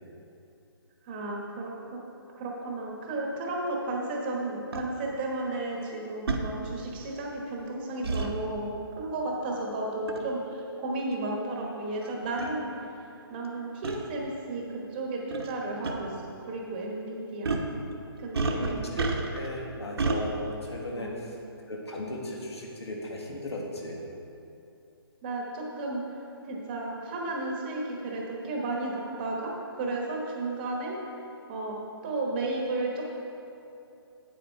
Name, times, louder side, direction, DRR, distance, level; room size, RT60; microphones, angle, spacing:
voice 1, 1.0-2.0 2.3-13.0 13.3-17.5 18.2-18.8 19.8-19.9 20.9-21.3 25.2-26.0 26.5-30.9 31.5-31.8 32.0-33.1, right 2 dB, 20° right, -1 dB, 1.1 m, -33 dB
sound 1, 4.7-4.8 6.3-6.4 8.0-8.3 10.1-10.3 11.1-11.2 12.0-12.1 12.4-12.5 13.8-14.0 15.3-15.5 15.8-15.9 17.4-17.7 18.3-19.5 20.0-20.2, right 3 dB, 70° right, 1.1 m, -29 dB
voice 2, 18.4-21.4 21.7-24.0, left 1 dB, 85° left, -1 dB, 1.8 m, -37 dB
8.8 x 7.9 x 4.5 m, 2.8 s
hypercardioid pair, 165°, 13 cm